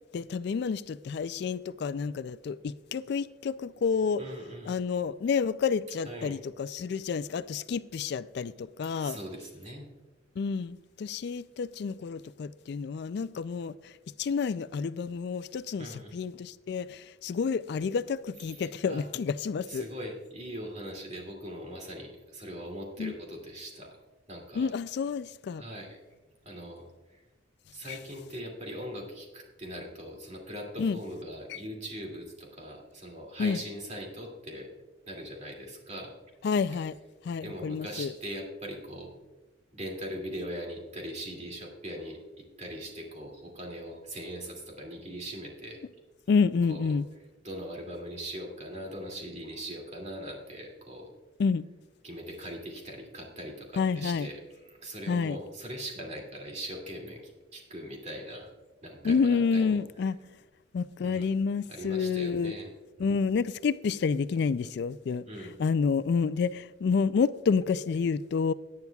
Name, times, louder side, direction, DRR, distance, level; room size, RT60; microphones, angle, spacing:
voice 1, 0.1-4.2 4.7-9.2 10.4-13.9 14.2-19.8 23.0-23.1 24.6-25.6 27.9-28.0 30.8-31.0 31.5-31.6 33.4-33.6 36.4-36.9 37.2-38.1 46.3-47.1 51.4-51.6 53.8-54.3 55.1-55.4 59.0-60.2 60.7-62.5 63.0-65.2 65.6-68.5, left 5 dB, 65° left, 0.3 m, -29 dB
voice 2, 4.2-4.7 6.0-6.4 9.0-9.9 15.8-16.1 18.5-18.6 18.9-19.0 19.7-24.0 24.3-24.7 25.6-26.0 26.4-27.2 27.7-34.7 35.1-36.1 37.4-39.1 39.7-45.8 46.7-46.9 47.4-51.1 52.0-54.4 54.7-58.5 58.8-59.8 61.0-61.3 61.7-62.7 63.0-63.1 65.3-65.5, equal, 40° right, 2.5 m, -41 dB
17.5 x 9.6 x 2.3 m
head